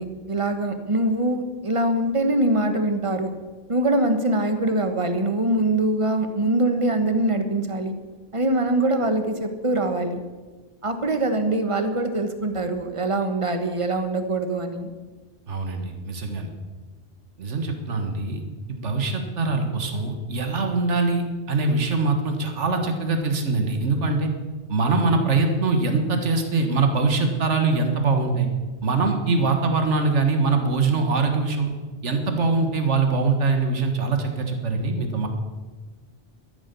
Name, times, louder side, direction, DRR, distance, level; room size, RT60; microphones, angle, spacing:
voice 1, 0.0-3.3 3.7-8.0 8.3-10.2 10.8-14.9, right 1 dB, 30° right, 8 dB, 1.3 m, -23 dB
voice 2, 15.5-16.5 17.4-18.4 18.7-24.3 24.7-28.5 28.8-31.7 32.0-35.3, right 3 dB, 80° right, 5 dB, 1.8 m, -23 dB
13.0 x 10.5 x 7.0 m, 1.3 s
omnidirectional pair, 1.2 m